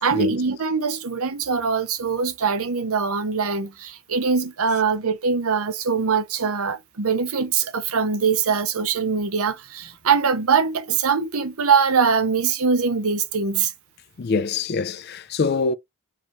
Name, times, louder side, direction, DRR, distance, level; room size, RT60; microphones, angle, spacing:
voice 1, 0.0-13.7, right 5 dB, 80° right, 0.8 m, -22 dB
voice 2, 14.2-15.7, left 4 dB, 45° left, 0.4 m, -24 dB
4.8 x 2.6 x 3.0 m
head